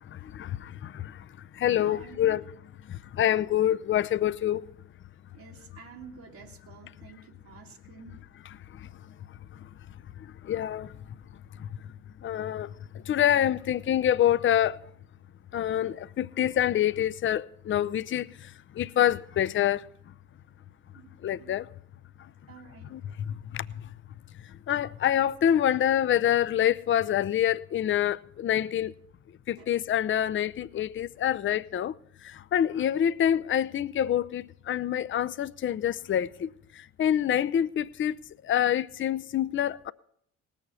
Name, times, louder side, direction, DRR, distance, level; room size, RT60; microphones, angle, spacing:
voice 1, 0.1-1.2 1.5-2.4 2.9-4.7 8.7-8.9 10.2-10.9 11.6-11.7 12.2-14.8 15.5-19.9 21.2-21.7 22.9-23.8 24.7-28.9 29.5-31.9 32.2-38.2 38.4-39.9, left 10 dB, 30° left, 0.5 m, -26 dB
voice 2, 1.8-2.4 5.3-8.3 20.9-21.1 21.4-21.6 22.5-22.9 29.6-29.7, right 6 dB, 65° right, 1.9 m, -49 dB
19.0 x 7.0 x 5.6 m
hypercardioid pair, 50°, 39 cm